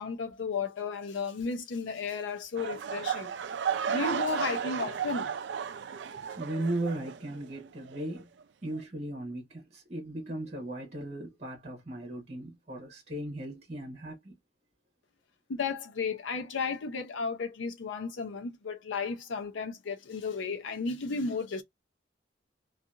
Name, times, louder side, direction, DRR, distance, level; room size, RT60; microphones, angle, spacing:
voice 1, 0.0-3.3 3.9-5.3 15.5-21.6, left 4 dB, 85° left, 0.5 m, -34 dB
sound 1, 2.6-7.6 7.9-8.2 8.7-8.8, right 7 dB, 65° right, 0.3 m, -34 dB
voice 2, 6.4-8.3 8.6-14.3, right 1 dB, 35° right, 1.0 m, -37 dB
2.8 x 2.4 x 2.3 m
head